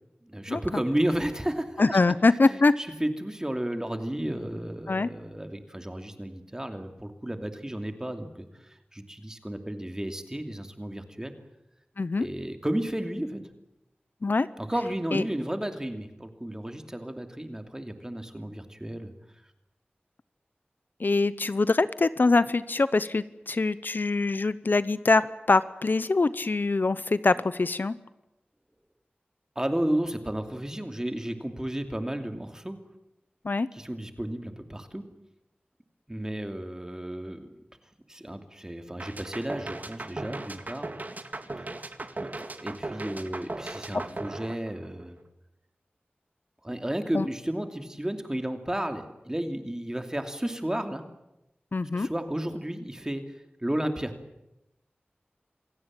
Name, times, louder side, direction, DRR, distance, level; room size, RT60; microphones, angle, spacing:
voice 1, 0.2-2.0 2.5-11.3 12.2-13.4 14.6-19.1 29.6-32.8 33.7-35.0 36.1-37.5 38.1-40.9 41.6-41.7 42.2-42.3 42.6-45.2 46.6-51.0 51.9-53.2 53.6-54.1, right 1 dB, 15° right, 6 dB, 2.7 m, -33 dB
voice 2, 1.8-2.7 4.9-5.1 12.0-12.3 14.2-14.5 15.1-15.2 21.0-28.0 33.4-33.7 47.1-47.3 51.7-52.1, left 3 dB, 60° left, 15 dB, 0.8 m, -24 dB
sound 1, 39.0-45.2, right 2 dB, 50° right, 2.0 m, -37 dB
27.5 x 17.5 x 8.9 m, 0.91 s
wide cardioid pair, 70°, 4 cm